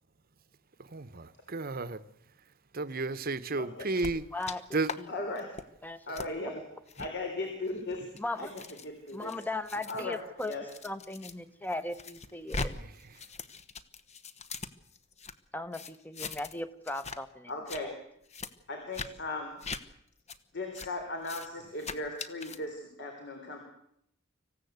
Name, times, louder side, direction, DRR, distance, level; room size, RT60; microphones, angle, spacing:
voice 1, 0.8-2.0 2.7-4.2 4.7-4.9 12.5-13.1, right 3 dB, 45° right, 1.0 m, -33 dB
voice 2, 3.6-3.9 5.1-5.5 6.1-6.7 7.0-9.4 9.8-10.7 17.5-18.0 18.7-19.6 20.5-23.6, left 2 dB, 55° left, 3.7 m, -38 dB
sound 1, 4.0-4.6 4.8-5.0 5.4-5.6 6.1-6.3 6.9-7.1 7.8-11.3 11.7-12.7 13.0-15.3 15.7-16.6 16.8-17.2 17.5-17.8 18.3-18.5 18.9-19.1 19.6-19.8 20.3-20.4 20.7-20.9 21.2-21.5 21.8-22.6, left 4 dB, 35° left, 1.1 m, -40 dB
voice 3, 4.1-5.4 5.8-6.1 8.2-8.5 9.1-10.5 10.8-12.7 15.5-17.5, left 2 dB, 10° left, 1.1 m, -38 dB
26.0 x 15.5 x 8.2 m
head